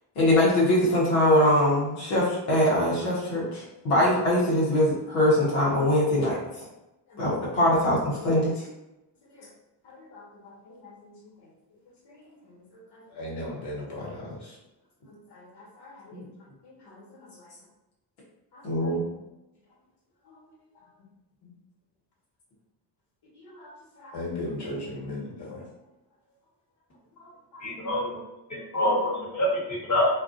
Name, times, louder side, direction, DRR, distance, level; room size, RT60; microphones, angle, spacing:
voice 1, 0.2-6.4 7.2-8.7 16.1-16.2 18.6-19.0, left 1 dB, 80° left, -6 dB, 1.0 m, -22 dB
voice 2, 13.2-14.3 18.8-18.9 23.6-23.7 24.0-25.6, left 1 dB, 55° left, -4 dB, 1.4 m, -35 dB
voice 3, 27.6-28.2 28.5-30.1, left 1 dB, 35° left, -4 dB, 1.1 m, -26 dB
2.5 x 2.4 x 2.4 m, 0.96 s
supercardioid pair, 45°, 48 cm